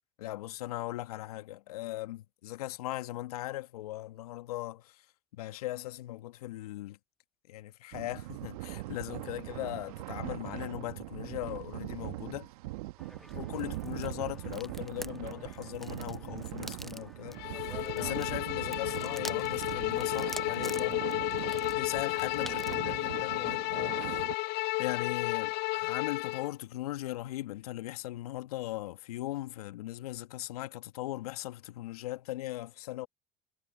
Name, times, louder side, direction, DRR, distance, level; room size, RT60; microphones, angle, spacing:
voice 1, 0.2-5.0 5.3-7.0 7.5-12.5 13.3-21.1 21.7-24.2 24.8-33.1, left 16 dB, 80° left, 1.6 m, -39 dB
sound 1, 7.9-24.3, right 19 dB, 75° right, 1.7 m, -41 dB
sound 2, 13.0-22.9, equal, ahead, 0.7 m, -48 dB
Bowed string instrument, 17.4-26.5, left 23 dB, 60° left, 0.5 m, -33 dB
hypercardioid pair, 65°, 19 cm